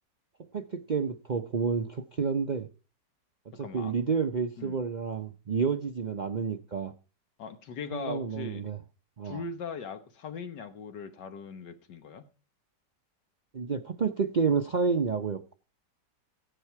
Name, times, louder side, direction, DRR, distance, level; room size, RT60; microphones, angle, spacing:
voice 1, 0.5-2.7 3.6-6.9 7.9-8.8 9.2-9.4 13.5-15.5, right 5 dB, 80° right, 0.4 m, -29 dB
voice 2, 3.6-3.9 4.6-4.8 7.4-8.6 9.2-12.3, left 5 dB, 80° left, 1.7 m, -40 dB
15.0 x 10.0 x 4.7 m
omnidirectional pair, 1.9 m